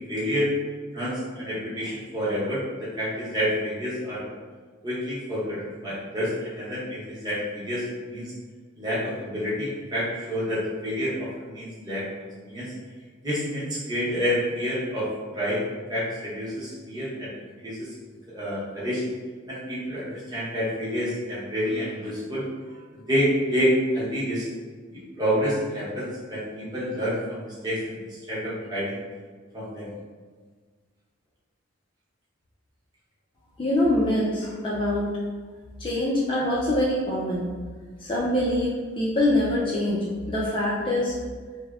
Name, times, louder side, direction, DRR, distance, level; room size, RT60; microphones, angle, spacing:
voice 1, 0.1-0.5 0.9-4.2 4.8-8.3 8.8-12.0 12.4-12.7 13.2-15.6 15.9-17.3 17.6-17.8 18.3-19.0 19.5-22.4 22.7-24.4 24.9-28.9 29.5-29.9, equal, 20° right, -8 dB, 0.8 m, -28 dB
voice 2, 33.6-35.1 35.8-37.5 38.0-41.2, left 1 dB, 25° left, -5 dB, 0.3 m, -24 dB
3.3 x 2.0 x 2.3 m, 1.5 s
head